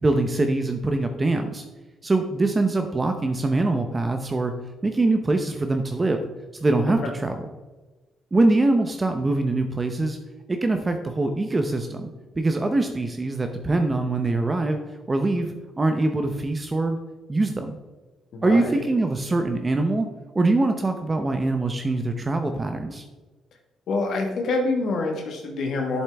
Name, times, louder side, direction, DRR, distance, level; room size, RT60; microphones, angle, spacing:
voice 1, 0.0-1.6 2.0-4.5 4.8-6.3 6.6-7.4 8.3-10.2 10.5-12.1 12.4-14.8 15.1-17.0 17.3-17.8 18.4-20.1 20.3-23.0, right 2 dB, 25° right, 6 dB, 0.7 m, -23 dB
voice 2, 18.3-18.8 23.9-26.0, left 3 dB, 65° left, 2 dB, 1.4 m, -26 dB
8.0 x 7.2 x 3.4 m, 1.2 s
cardioid pair, 90°, 0 cm